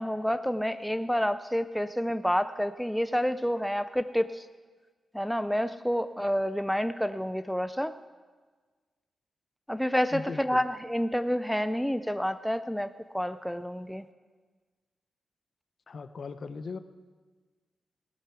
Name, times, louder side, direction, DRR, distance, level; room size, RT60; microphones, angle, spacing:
voice 1, 0.0-4.5 5.1-7.9 9.7-14.1, equal, ahead, 10 dB, 0.4 m, -29 dB
voice 2, 10.1-10.6 15.9-16.8, left 4 dB, 50° left, 11 dB, 0.7 m, -38 dB
18.5 x 8.0 x 6.0 m, 1.4 s
wide cardioid pair, 115°, 0 cm